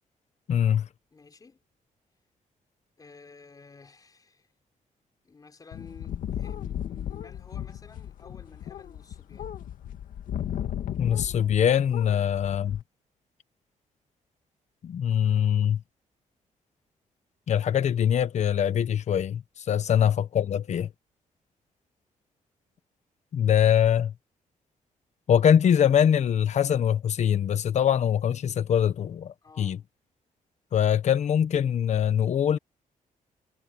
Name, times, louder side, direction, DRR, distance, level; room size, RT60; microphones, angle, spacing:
voice 1, 0.5-0.9 11.0-12.8 14.8-15.8 17.5-20.9 23.3-24.1 25.3-29.8 30.7-32.6, left 9 dB, 60° left, 1.2 m, -23 dB
voice 2, 1.1-1.6 3.0-4.5 5.2-9.6 19.9-20.1 29.4-29.8, left 4 dB, 25° left, 5.6 m, -52 dB
sound 1, 5.7-11.7 11.9-12.8, left 10 dB, 85° left, 2.0 m, -35 dB
wide cardioid pair, 145°, 14 cm